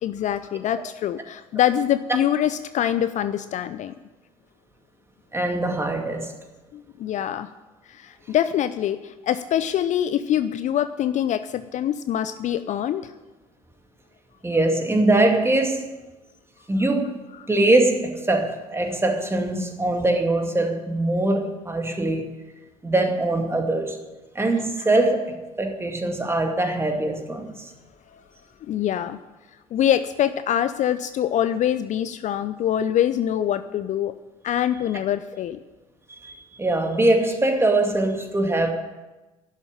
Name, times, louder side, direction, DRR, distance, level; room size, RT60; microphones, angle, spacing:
voice 1, 0.0-3.9 6.7-7.5 7.9-13.1 28.1-28.2 28.7-29.2 29.7-34.1 34.4-35.6, left 10 dB, 40° left, 12 dB, 0.6 m, -24 dB
voice 2, 5.3-6.3 14.4-15.9 16.7-17.2 17.5-22.3 22.8-24.0 24.3-27.7 36.2-38.7, right 2 dB, 15° right, 4 dB, 2.3 m, -22 dB
11.5 x 7.5 x 10.0 m, 1.1 s
figure-of-eight pair, 60°, 18 cm